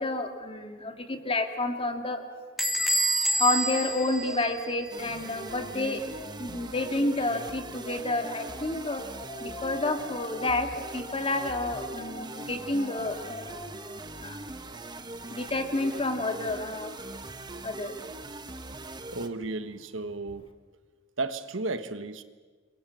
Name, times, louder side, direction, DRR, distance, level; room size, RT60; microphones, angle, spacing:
voice 1, 0.0-2.6 3.4-14.5 15.0-16.9 17.6-17.9, left 2 dB, 30° left, 6 dB, 2.3 m, -30 dB
Bell / Squeak, 2.6-5.1, right 1 dB, ahead, 2.2 m, -28 dB
sound 1, 4.9-19.3, right 2 dB, 20° right, 1.3 m, -41 dB
voice 2, 19.1-20.5 21.2-22.2, right 3 dB, 70° right, 11 dB, 1.3 m, -33 dB
29.0 x 22.5 x 7.7 m, 1.4 s
head